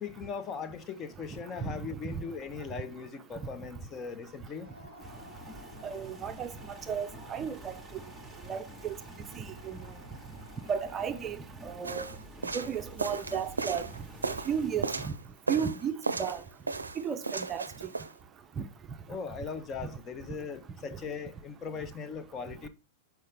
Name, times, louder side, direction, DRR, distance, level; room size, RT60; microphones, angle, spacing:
voice 1, 0.0-4.7 19.1-22.7, left 5 dB, 25° left, 0.6 m, -39 dB
sound 1, 4.5-11.7, left 1 dB, 80° left, 0.9 m, -54 dB
sound 2, 5.0-15.1, right 1 dB, 5° right, 1.0 m, -48 dB
voice 2, 5.8-6.5 6.9-7.7 8.5-9.0 9.3-9.8 10.7-11.4 11.6-12.1 12.5-13.8 14.5-15.1 15.5-16.4 17.0-17.6 18.6-18.7, right 7 dB, 25° right, 0.5 m, -33 dB
sound 3, 11.8-15.2 15.5-16.4 16.7-18.1, right 4 dB, 80° right, 0.5 m, -35 dB
6.5 x 4.5 x 3.4 m
figure-of-eight pair, 95°, 0 cm